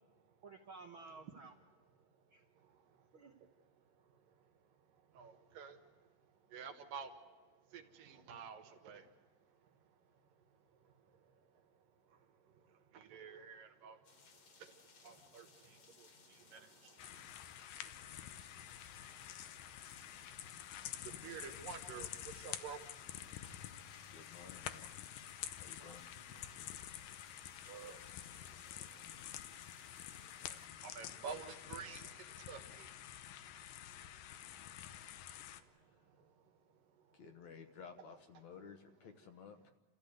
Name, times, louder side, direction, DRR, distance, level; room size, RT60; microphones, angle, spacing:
voice 1, 0.4-1.5 2.3-2.4 3.1-3.3 25.8-26.5, right 4 dB, 65° right, 3 dB, 1.3 m, -54 dB
voice 2, 2.6-3.1 3.4-3.5 5.1-5.9 6.5-7.4 7.7-9.2 10.8-11.6 12.1-12.3 12.5-14.1 14.6-19.8 20.1-24.0 25.3-25.5 26.5-30.0 30.3-33.1 33.9-34.0 34.6-35.0 35.4-36.5, right 6 dB, 80° right, 6 dB, 3.1 m, -53 dB
sound 1, 14.0-30.7, left 5 dB, 50° left, 2.5 m, -63 dB
sound 2, 17.0-35.6, left 11 dB, 90° left, 2.6 m, -49 dB
voice 3, 23.4-24.9 25.5-26.1 26.9-27.4 35.7-36.1 37.1-39.7, left 6 dB, 65° left, 6 dB, 2.2 m, -56 dB
29.0 x 14.0 x 8.0 m, 1.4 s
omnidirectional pair, 3.8 m